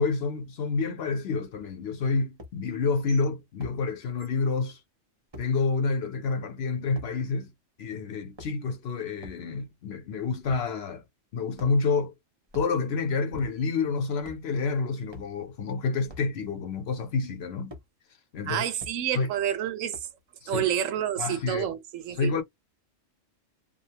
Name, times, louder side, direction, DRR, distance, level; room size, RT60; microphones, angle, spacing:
voice 1, 0.0-4.8 5.4-7.5 7.8-11.0 11.3-12.1 12.5-17.8 18.3-18.6 19.1-19.3 20.4-20.7 21.2-21.7 22.2-22.4, left 4 dB, 60° left, 0.9 m, -28 dB
sound 1, 2.4-2.6 3.6-3.8 5.3-5.5 6.9-7.1 8.2-8.7 9.2-9.4 10.4-10.7 11.5-12.0 12.4-12.8 13.3-13.8 14.2-14.5 15.1-15.3 16.0-16.3 17.7-17.9 18.8-19.0 19.9-20.2, left 1 dB, 25° right, 0.6 m, -45 dB
voice 2, 18.5-20.0 20.5-22.3, right 10 dB, 90° right, 1.0 m, -29 dB
2.7 x 2.0 x 2.8 m
omnidirectional pair, 1.3 m